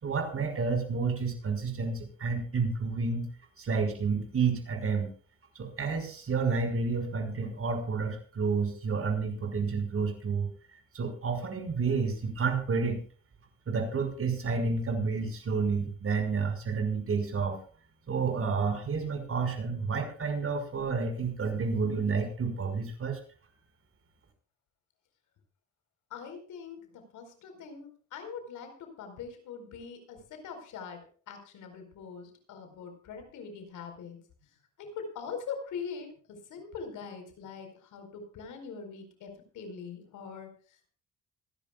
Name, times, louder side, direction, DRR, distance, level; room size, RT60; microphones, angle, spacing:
voice 1, 0.0-3.3 3.6-5.1 5.6-10.5 10.9-13.0 13.7-17.6 18.1-23.2, right 5 dB, 45° right, 6 dB, 5.5 m, -30 dB
voice 2, 26.1-34.5 34.8-40.9, left 6 dB, 80° left, 6 dB, 4.7 m, -43 dB
26.5 x 11.5 x 2.4 m, 0.41 s
cardioid pair, 90°, 30 cm